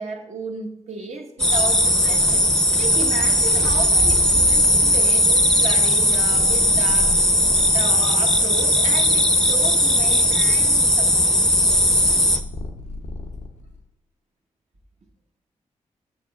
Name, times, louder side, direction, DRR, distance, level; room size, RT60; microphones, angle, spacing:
voice 1, 0.0-2.4 2.8-7.1 7.7-11.5, right 3 dB, 60° right, 2 dB, 1.2 m, -33 dB
Purr, 1.4-7.9 8.6-13.8, left 1 dB, 85° left, 0.6 m, -37 dB
sound 1, 1.4-12.4, left 1 dB, 5° left, 0.6 m, -18 dB
7.1 x 6.4 x 2.3 m, 0.77 s
cardioid pair, 55°, 13 cm